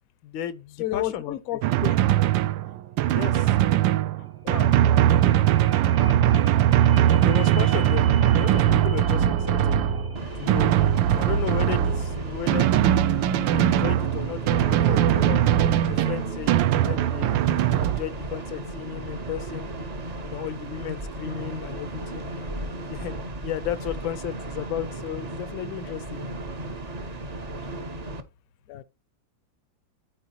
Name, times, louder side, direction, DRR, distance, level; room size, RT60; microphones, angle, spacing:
voice 1, 0.2-1.4 3.1-3.5 7.2-8.1 8.3-9.8 10.3-10.7 11.1-15.4 15.8-19.7 20.2-23.1 23.4-26.2, left 11 dB, 85° left, 1.6 m, -34 dB
voice 2, 0.8-2.0 4.4-4.7 5.4-5.5 25.8-26.0 27.0-27.2 27.6-27.8 28.7-28.8, left 14 dB, 65° left, 0.9 m, -32 dB
Drum, 1.6-18.0, right 11 dB, 75° right, 1.3 m, -21 dB
sound 1, 4.3-4.4 4.6-20.6 21.1-21.2, left 1 dB, 20° left, 0.5 m, -44 dB
sound 2, 10.1-28.2, right 1 dB, 50° right, 0.5 m, -35 dB
13.0 x 4.6 x 2.9 m
omnidirectional pair, 2.1 m